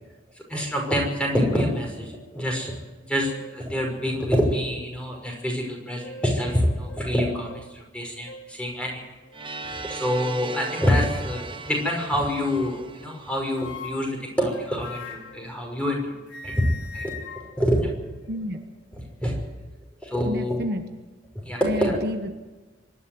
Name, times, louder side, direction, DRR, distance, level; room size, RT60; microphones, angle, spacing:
voice 1, 0.5-2.7 3.1-9.0 9.6-16.1 16.4-16.7 16.9-17.1 17.6-17.9 19.2-19.3 20.0-20.7 21.3-22.0, equal, 5° left, 0 dB, 6.0 m, -26 dB
sound 1, 2.8-2.9 3.2-3.6 4.3-4.4 5.7-6.4 6.9-7.0 7.5-7.7 8.2-8.5 9.2-9.9 10.9-11.4 12.3-12.9 13.5-16.0 16.3-18.6, left 3 dB, 75° left, 2.2 m, -42 dB
sound 2, 9.3-14.2, right 3 dB, 25° right, 1.2 m, -38 dB
voice 2, 18.3-18.6 20.3-20.8 21.6-22.3, equal, 55° right, 6 dB, 1.3 m, -29 dB
25.0 x 11.5 x 9.6 m, 1.2 s
head